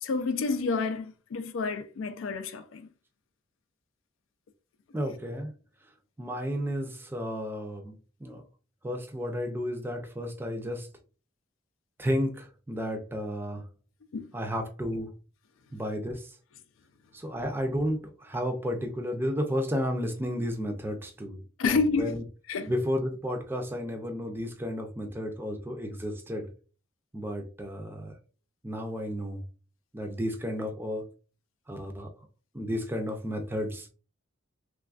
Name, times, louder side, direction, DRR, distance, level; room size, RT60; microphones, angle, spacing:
voice 1, 0.0-2.9 14.1-14.3 21.6-22.2 22.5-22.7, left 4 dB, 90° left, 0.4 m, -29 dB
voice 2, 4.9-5.5 6.2-8.0 8.2-8.4 8.8-10.9 12.0-13.6 14.3-15.1 15.7-16.3 17.1-22.2 22.7-26.5 27.1-28.1 28.6-29.4 29.9-31.0 31.7-32.1 32.5-33.9, equal, 10° right, 0.4 m, -32 dB
3.2 x 2.3 x 2.3 m
head